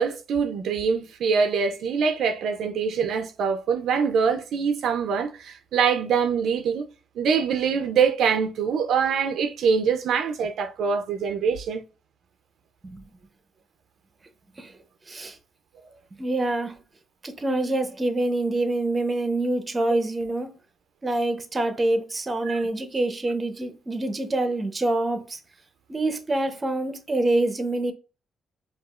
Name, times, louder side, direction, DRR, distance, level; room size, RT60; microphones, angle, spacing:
voice 1, 0.0-6.9 7.2-11.8 22.5-22.6, right 6 dB, 75° right, 0.4 m, -24 dB
voice 2, 15.1-15.4 16.2-16.8 17.2-20.5 21.0-25.4 25.9-27.9, right 2 dB, 25° right, 0.7 m, -26 dB
4.8 x 2.4 x 2.4 m
cardioid pair, 90°, 0 cm